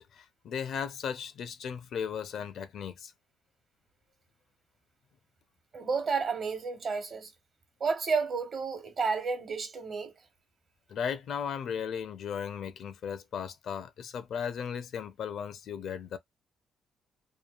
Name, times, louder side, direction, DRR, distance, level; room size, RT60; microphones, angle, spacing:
voice 1, 0.0-3.1 10.9-16.2, left 7 dB, 65° left, 0.6 m, -36 dB
voice 2, 5.7-7.3 7.8-10.1, right 5 dB, 50° right, 1.2 m, -31 dB
3.1 x 2.4 x 2.3 m
cardioid pair, 90°, 0 cm